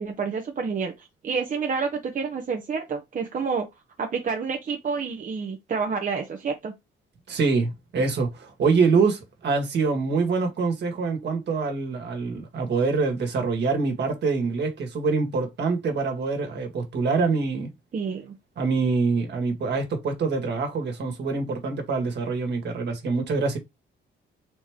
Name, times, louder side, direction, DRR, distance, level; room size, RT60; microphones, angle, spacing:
voice 1, 0.0-3.7 4.0-6.7 17.9-18.3, right 5 dB, 40° right, 0.8 m, -29 dB
voice 2, 7.3-17.7 18.6-23.6, right 4 dB, 60° right, 1.7 m, -25 dB
4.0 x 3.1 x 3.5 m
cardioid pair, 90°, 20 cm